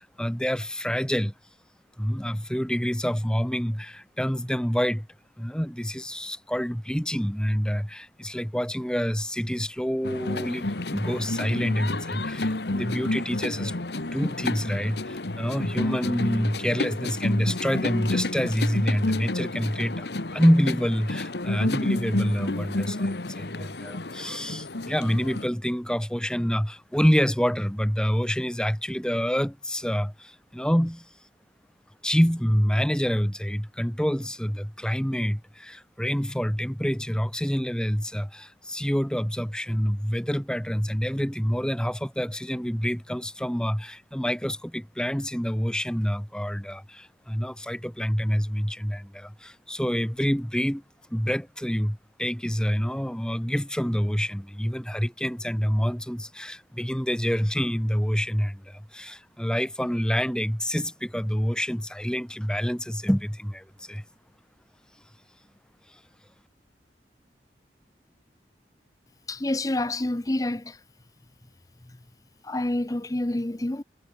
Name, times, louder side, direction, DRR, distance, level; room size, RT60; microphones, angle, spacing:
voice 1, 0.0-1.3 2.0-5.1 5.4-13.7 14.1-20.1 20.3-31.1 32.0-50.8 51.1-64.0 65.9-66.0, equal, 5° left, 2.2 m, -27 dB
sound 1, 10.0-25.5, left 2 dB, 75° left, 1.5 m, -30 dB
voice 2, 69.3-70.8 72.4-73.8, left 1 dB, 20° left, 0.7 m, -28 dB
head